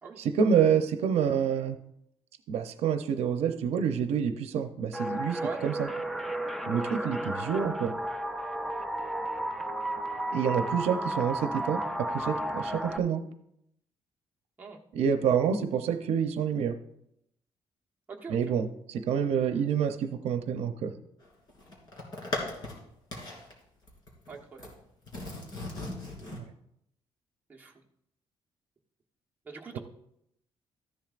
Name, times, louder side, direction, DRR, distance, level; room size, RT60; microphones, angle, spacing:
voice 1, 0.2-1.8 2.5-5.9 6.7-7.9 10.3-11.8 12.1-13.2 14.9-16.7 18.3-20.9 26.3-26.4, right 7 dB, 80° right, 8 dB, 0.7 m, -27 dB
sound 1, 4.9-13.0, right 1 dB, ahead, 0.5 m, -33 dB
voice 2, 18.1-18.6 24.3-24.7 27.5-27.7 29.5-29.8, right 5 dB, 15° right, -2 dB, 1.2 m, -42 dB
sound 2, 21.2-22.8 23.1-23.5 23.9-24.7 25.1-26.4, left 2 dB, 45° left, 3.0 m, -38 dB
13.5 x 10.5 x 2.5 m, 0.76 s
cardioid pair, 170°, 10 cm